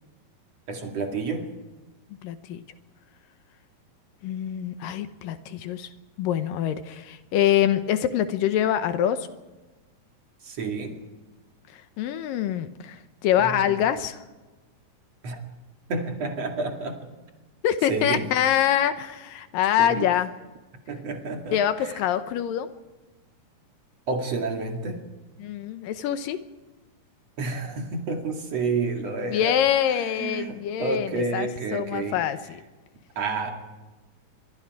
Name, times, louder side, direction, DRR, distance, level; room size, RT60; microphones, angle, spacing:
voice 1, 0.7-1.5 10.4-11.0 13.4-13.7 15.2-15.4 15.9-17.0 17.9-18.2 19.8-20.1 20.9-21.6 24.1-25.1 27.4-29.5 29.9-32.2 33.2-33.5, right 3 dB, 50° right, 3 dB, 3.1 m, -29 dB
voice 2, 2.2-2.6 4.2-5.9 6.2-9.3 12.0-14.2 17.6-20.3 21.5-22.7 25.4-26.4 29.3-32.6, left 10 dB, 80° left, 10 dB, 2.5 m, -25 dB
25.5 x 23.0 x 4.9 m, 1.2 s
omnidirectional pair, 4.1 m